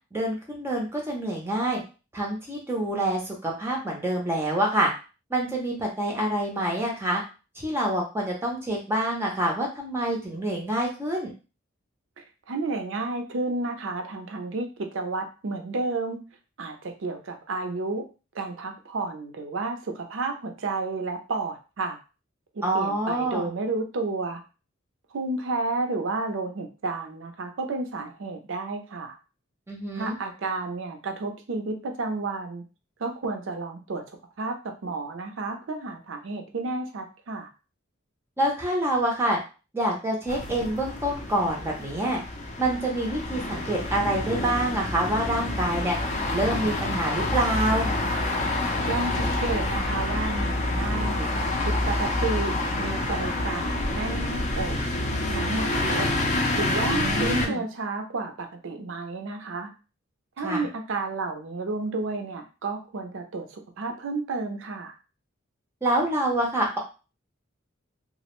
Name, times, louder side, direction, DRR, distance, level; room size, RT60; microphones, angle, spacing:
voice 1, 0.1-1.8 2.1-4.9 5.3-7.2 7.6-11.3 22.6-23.5 29.7-30.2 38.4-39.4 39.7-42.2 42.6-46.0 46.3-47.9 56.9-57.6 60.4-60.7 65.8-66.8, right 1 dB, 10° right, -1 dB, 0.5 m, -26 dB
voice 2, 12.2-16.2 16.6-18.0 18.3-22.0 22.5-24.4 25.1-29.1 30.0-32.6 33.0-34.6 34.8-37.5 48.7-51.3 51.6-54.8 55.3-56.1 56.5-59.7 60.4-64.9, right 3 dB, 65° right, 4 dB, 0.5 m, -31 dB
sound 1, 40.3-57.5, left 2 dB, 35° left, 0.4 m, -27 dB
2.4 x 2.0 x 2.9 m, 0.32 s
head